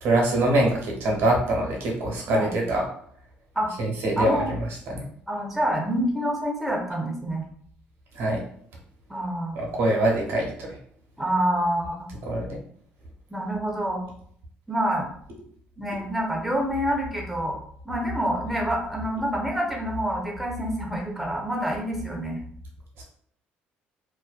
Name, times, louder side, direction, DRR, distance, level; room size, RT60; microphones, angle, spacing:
voice 1, 0.0-2.8 3.8-5.0 8.1-8.4 9.5-10.8 12.2-12.6 23.0-23.1, right 1 dB, 70° right, -1 dB, 0.8 m, -24 dB
voice 2, 4.2-4.5 5.3-7.4 9.1-9.6 11.2-12.0 13.3-14.0 14.7-15.1 15.8-17.6 17.8-22.4, equal, 5° right, -1 dB, 0.7 m, -27 dB
2.5 x 2.1 x 2.4 m, 0.63 s
supercardioid pair, 80°, 4 cm